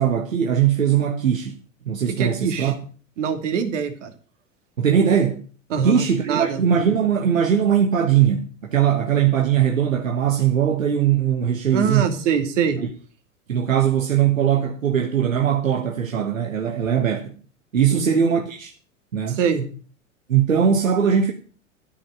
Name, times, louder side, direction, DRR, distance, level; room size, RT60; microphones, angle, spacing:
voice 1, 0.0-1.6 1.8-2.8 4.8-5.4 5.8-12.1 12.8-12.9 13.5-17.3 17.7-18.7 19.1-19.4 20.3-21.3, right 8 dB, 80° right, 1.4 m, -20 dB
voice 2, 2.1-2.7 3.2-4.1 5.7-6.6 11.7-12.8 17.9-18.0 19.3-19.6, right 6 dB, 65° right, 2.6 m, -24 dB
13.5 x 5.4 x 9.0 m
figure-of-eight pair, 95°, 39 cm